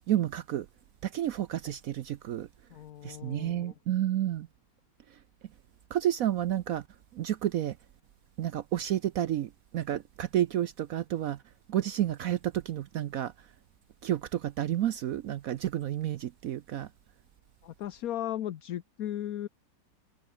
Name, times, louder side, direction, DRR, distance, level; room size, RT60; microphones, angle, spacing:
voice 1, 0.1-0.7 1.0-2.5 3.0-4.5 5.9-6.8 7.1-7.7 8.4-11.4 11.7-13.3 14.0-16.9, right 12 dB, 65° right, 0.9 m, -30 dB
voice 2, 2.7-3.7 17.6-19.5, left 11 dB, 60° left, 1.1 m, -36 dB
omnidirectional pair, 2.0 m